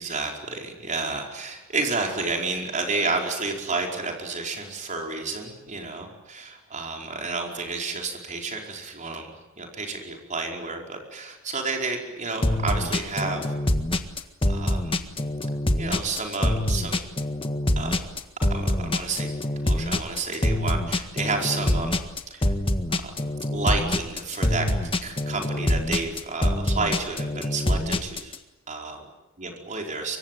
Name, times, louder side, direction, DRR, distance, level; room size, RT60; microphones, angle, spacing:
voice 1, 0.0-13.5 14.5-15.0 15.8-17.0 17.8-17.9 18.5-19.3 19.6-21.9 22.3-22.5 22.9-23.1 23.5-24.7 25.0-28.3 28.7-29.1 29.4-30.2, right 3 dB, 35° right, 1 dB, 4.9 m, -30 dB
sound 1, 12.4-28.3, left 1 dB, 25° left, 1.7 m, -25 dB
25.0 x 23.5 x 9.3 m, 1.0 s
head